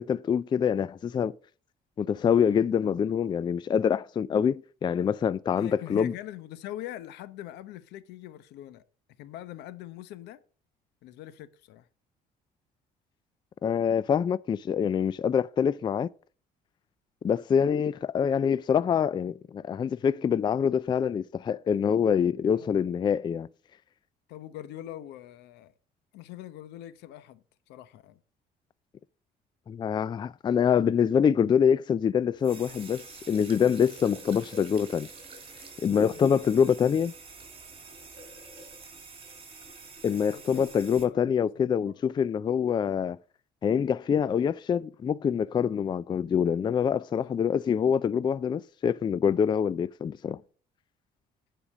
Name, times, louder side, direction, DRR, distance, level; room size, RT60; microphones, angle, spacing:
voice 1, 0.0-1.3 2.0-6.1 13.6-16.1 17.2-23.5 29.7-35.1 35.8-37.1 40.0-43.2 43.6-50.4, left 7 dB, 25° left, 0.3 m, -25 dB
voice 2, 5.5-8.8 9.2-10.4 11.0-11.9 22.5-22.7 24.3-25.7 26.1-28.2 36.1-36.5 40.0-40.7 41.0-41.9 47.1-47.5, left 13 dB, 85° left, 0.9 m, -43 dB
sound 1, 32.4-41.0, right 3 dB, 35° right, 3.7 m, -47 dB
9.9 x 5.1 x 6.3 m
cardioid pair, 110°, 17 cm